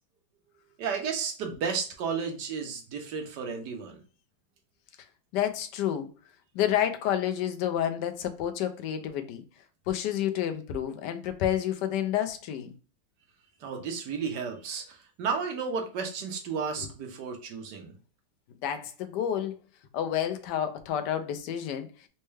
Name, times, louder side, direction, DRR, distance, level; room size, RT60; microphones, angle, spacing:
voice 1, 0.8-4.0 13.6-17.9, right 5 dB, 75° right, 1.4 m, -33 dB
voice 2, 5.3-6.1 6.5-9.4 9.9-12.7 18.5-19.6 19.9-21.9, left 10 dB, 80° left, 1.2 m, -29 dB
4.2 x 2.2 x 3.2 m
omnidirectional pair, 1.8 m